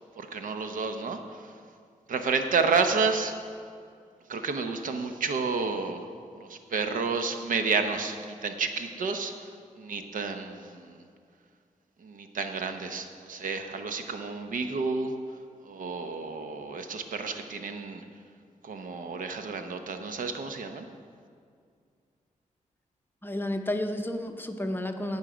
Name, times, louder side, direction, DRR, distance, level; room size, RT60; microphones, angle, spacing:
voice 1, 0.2-1.4 2.1-3.3 4.3-6.1 6.4-9.5 9.8-11.0 12.0-15.1 15.6-18.0 18.6-20.9, right 4 dB, 75° right, 6 dB, 0.9 m, -30 dB
voice 2, 23.2-25.2, left 1 dB, 15° left, 5 dB, 0.8 m, -31 dB
17.0 x 5.6 x 5.0 m, 2.2 s
cardioid pair, 95°, 14 cm